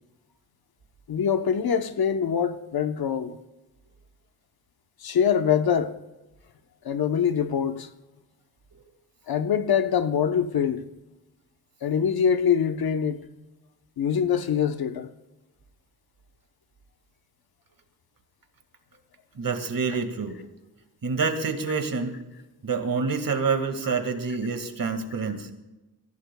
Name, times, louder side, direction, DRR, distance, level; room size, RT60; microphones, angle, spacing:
voice 1, 1.1-3.4 5.0-5.9 6.8-7.9 9.3-10.8 11.8-13.2 14.0-15.1, left 7 dB, 85° left, 0.9 m, -24 dB
voice 2, 19.4-20.4 21.0-22.2 22.6-25.5, right 4 dB, 65° right, 2.0 m, -27 dB
23.0 x 16.0 x 2.3 m
cardioid pair, 70°, 36 cm